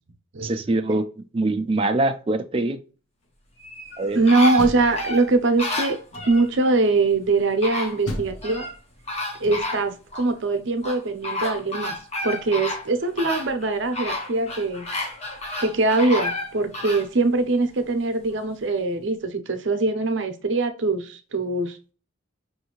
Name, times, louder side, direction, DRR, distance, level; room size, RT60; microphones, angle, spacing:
voice 1, 0.4-1.0 1.3-2.8 4.0-4.2, right 2 dB, 25° right, 7 dB, 0.3 m, -23 dB
sound 1, 3.6-6.5 7.2-7.3 7.6-8.7 9.1-10.3 10.8-17.1 17.6-17.7, left 2 dB, 30° left, 0.8 m, -31 dB
voice 2, 4.1-6.0 6.2-8.7 9.4-11.9 12.2-15.1 15.6-21.8, right 3 dB, 65° right, 8 dB, 0.6 m, -22 dB
Door, 4.3-5.6 6.1-6.7 8.0-9.9, left 1 dB, 75° left, 0.7 m, -36 dB
5.5 x 2.6 x 2.9 m, 0.36 s
head